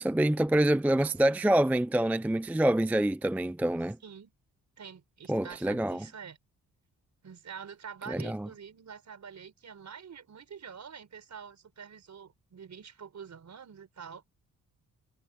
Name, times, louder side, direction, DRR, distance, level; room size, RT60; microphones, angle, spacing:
voice 1, 0.0-4.0 5.3-6.0 8.1-8.5, right 1 dB, 5° right, 0.4 m, -26 dB
voice 2, 4.8-6.4 7.2-14.2, right 7 dB, 50° right, 5.2 m, -46 dB
cardioid pair, 100°, 36 cm